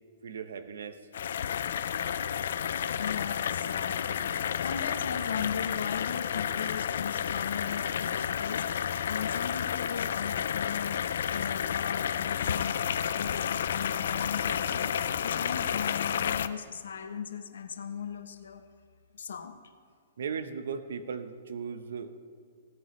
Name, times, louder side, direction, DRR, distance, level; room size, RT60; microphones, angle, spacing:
voice 1, 0.2-1.1 20.2-22.1, right 6 dB, 75° right, 11 dB, 0.8 m, -37 dB
sound 1, 1.1-16.5, left 8 dB, 70° left, 0.4 m, -31 dB
voice 2, 3.0-18.7 19.1-19.6, left 7 dB, 90° left, 10 dB, 0.8 m, -38 dB
16.5 x 9.3 x 3.1 m, 2.1 s
hypercardioid pair, 160°, 0 cm